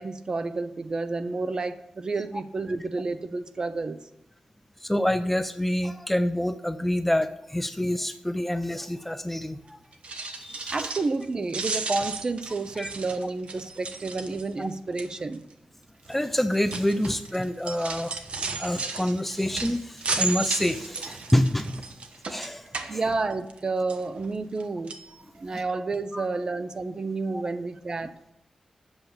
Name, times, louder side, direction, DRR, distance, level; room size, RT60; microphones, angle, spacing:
voice 1, 0.0-4.0 10.7-15.4 22.9-24.9 25.3-28.1, right 3 dB, 35° right, 11 dB, 0.6 m, -30 dB
voice 2, 4.8-9.8 10.2-10.7 12.8-12.9 14.6-14.7 16.1-18.1 18.6-21.8 22.3-23.0 25.5-25.6 26.1-26.2 27.3-27.4, left 1 dB, 5° left, 10 dB, 0.4 m, -27 dB
sound 1, 9.9-11.2 11.5-14.6 15.0-15.3 16.1-23.6 23.9-24.6 24.9-25.1 25.6-25.7 25.9-26.0, right 4 dB, 60° right, 0.9 m, -34 dB
7.9 x 7.3 x 7.1 m, 0.82 s
wide cardioid pair, 180°, 2 cm